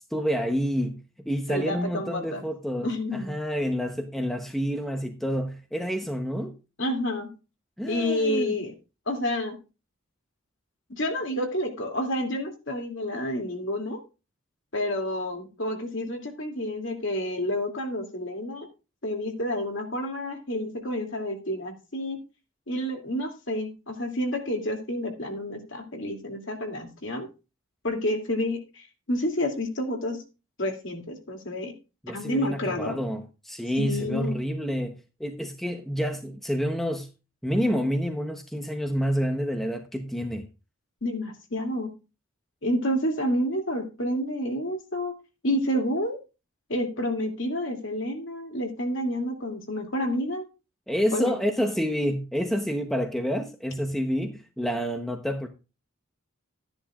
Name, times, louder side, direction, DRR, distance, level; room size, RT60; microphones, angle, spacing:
voice 1, 0.1-6.5 7.8-8.6 32.0-37.1 37.4-40.5 50.9-55.5, equal, ahead, 0.9 m, -28 dB
voice 2, 1.5-2.4 2.8-3.3 6.8-7.3 7.9-8.7 9.1-9.6 10.9-14.0 14.7-18.7 19.0-22.2 22.7-27.3 27.8-30.2 30.6-31.7 32.1-33.0 33.8-34.3 41.0-41.9 42.6-45.1 45.4-46.2 46.7-50.4 51.1-51.3, left 1 dB, 60° left, 2.6 m, -29 dB
13.5 x 10.0 x 2.4 m
head